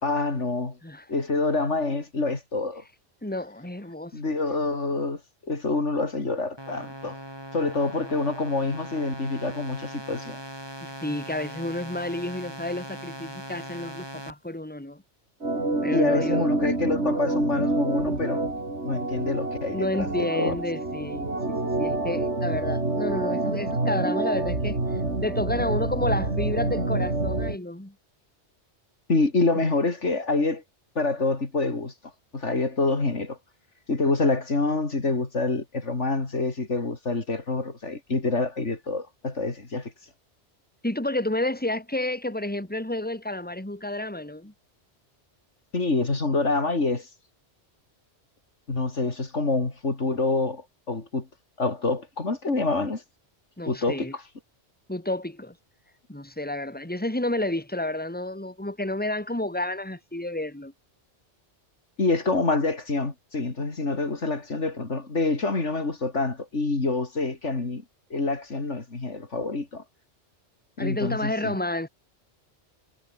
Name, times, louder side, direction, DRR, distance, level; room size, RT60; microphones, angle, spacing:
voice 1, 0.0-0.8 1.1-2.8 4.1-5.2 5.5-7.2 7.5-10.4 15.9-18.4 18.8-20.5 29.1-30.6 31.0-31.9 32.3-33.4 33.9-39.9 45.7-47.1 48.7-51.3 51.6-53.0 53.7-54.2 62.0-67.8 68.1-69.8 70.8-71.6, left 3 dB, 85° left, 3.7 m, -26 dB
voice 2, 3.2-4.1 10.8-15.0 15.8-16.5 19.7-24.8 25.2-27.9 29.5-29.6 40.8-44.5 53.6-54.1 54.9-55.5 56.1-60.7 70.8-71.9, left 1 dB, 10° left, 2.9 m, -30 dB
sound 1, 6.6-14.3, equal, 20° right, 7.3 m, -40 dB
Organ, 15.4-27.6, right 2 dB, 75° right, 4.6 m, -27 dB
omnidirectional pair, 1.2 m